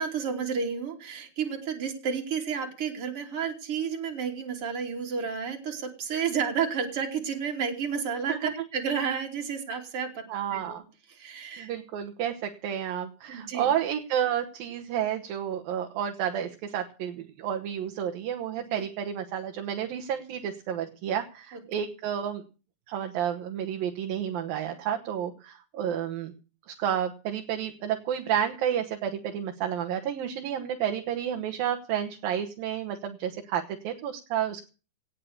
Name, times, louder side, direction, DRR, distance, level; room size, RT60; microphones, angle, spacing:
voice 1, 0.0-10.2 10.5-10.8 11.1-11.7 13.3-13.7 18.5-18.8 21.5-21.6, right 6 dB, 40° right, 2 dB, 3.8 m, -31 dB
voice 2, 10.3-10.8 11.6-22.4 22.9-26.3 26.8-34.6, right 9 dB, 80° right, 3 dB, 3.1 m, -31 dB
18.0 x 8.7 x 6.7 m, 0.35 s
omnidirectional pair, 4.0 m